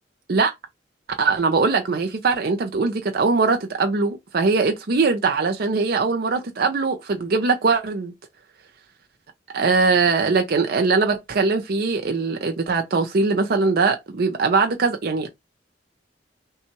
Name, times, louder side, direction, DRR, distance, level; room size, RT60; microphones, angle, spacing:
voice 1, 1.2-8.1 9.5-15.3, right 4 dB, 55° right, 0.5 m, -21 dB
5.6 x 2.3 x 2.9 m
head